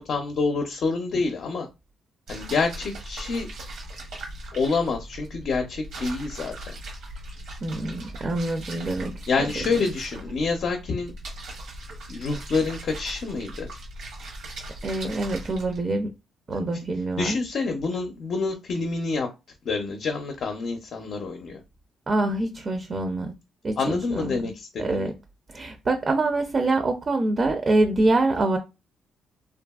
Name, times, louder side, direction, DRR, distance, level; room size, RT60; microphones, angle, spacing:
voice 1, 0.0-1.7 2.3-3.5 4.5-6.7 9.3-11.1 12.1-13.7 17.2-19.3 19.6-21.6 23.8-25.1, left 4 dB, 60° left, 0.5 m, -27 dB
sound 1, 2.3-15.8, right 1 dB, 85° right, 0.9 m, -39 dB
voice 2, 7.6-9.2 14.8-16.1 16.5-17.4 22.1-23.3 23.6-24.4 24.8-25.1 25.5-28.6, right 2 dB, 40° right, 0.4 m, -25 dB
2.7 x 2.4 x 2.3 m
cardioid pair, 90°, 0 cm